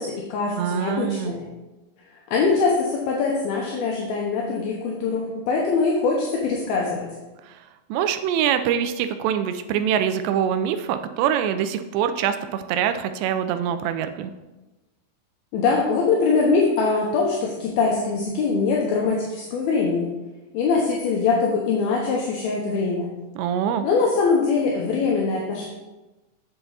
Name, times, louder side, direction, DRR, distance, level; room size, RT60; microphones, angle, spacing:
voice 1, 0.0-1.5 2.3-7.1 15.5-20.2 20.5-23.1 23.8-25.7, left 4 dB, 75° left, -2 dB, 2.6 m, -22 dB
voice 2, 0.6-1.3 7.9-14.3 23.4-23.9, right 9 dB, 90° right, 9 dB, 2.7 m, -24 dB
7.8 x 7.2 x 4.0 m, 1.1 s
omnidirectional pair, 4.8 m